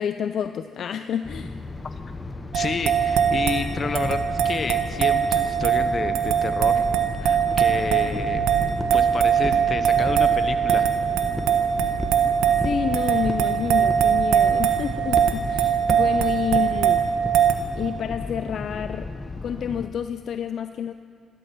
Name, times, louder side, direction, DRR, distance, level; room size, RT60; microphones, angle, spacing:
voice 1, 0.0-1.5 12.6-17.1 17.8-19.1 19.4-20.9, left 8 dB, 65° left, 10 dB, 0.4 m, -29 dB
sound 1, 1.2-19.9, left 2 dB, 20° left, 0.8 m, -35 dB
voice 2, 2.5-6.8 7.2-8.5 8.9-10.9, left 5 dB, 45° left, 9 dB, 1.0 m, -30 dB
sound 2, 2.5-17.5, right 8 dB, 90° right, 1.2 m, -22 dB
sound 3, 7.5-7.6 8.1-8.4 8.8-9.1 9.4-10.3 10.7-11.0 11.4-11.6 12.0-12.2 12.6-12.9 13.2-13.5 13.9-14.1 14.5-14.8 15.2-15.4 15.9-16.1 16.5-16.7 17.2-17.4, right 1 dB, 5° right, 1.3 m, -32 dB
15.5 x 12.5 x 6.1 m, 2.5 s
cardioid pair, 90°, 0 cm